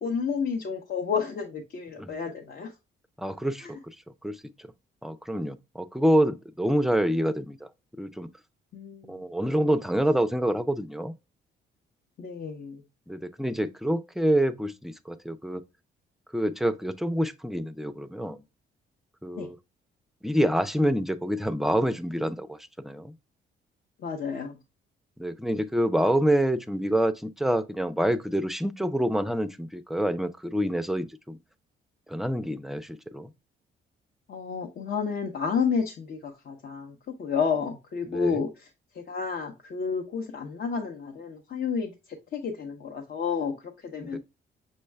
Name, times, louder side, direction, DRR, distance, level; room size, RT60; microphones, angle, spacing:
voice 1, 0.0-2.7 3.6-3.7 8.7-9.3 12.2-12.8 19.3-19.5 24.0-24.6 34.3-38.7 38.9-44.2, left 6 dB, 55° left, 0.7 m, -31 dB
voice 2, 3.2-4.0 4.2-4.7 5.0-7.7 8.0-8.3 9.1-11.1 13.1-15.6 16.3-18.4 19.2-19.6 20.2-23.1 25.2-31.4 32.1-33.3 38.1-38.4 44.0-44.2, equal, ahead, 0.4 m, -27 dB
6.3 x 2.2 x 3.2 m
cardioid pair, 90°, 20 cm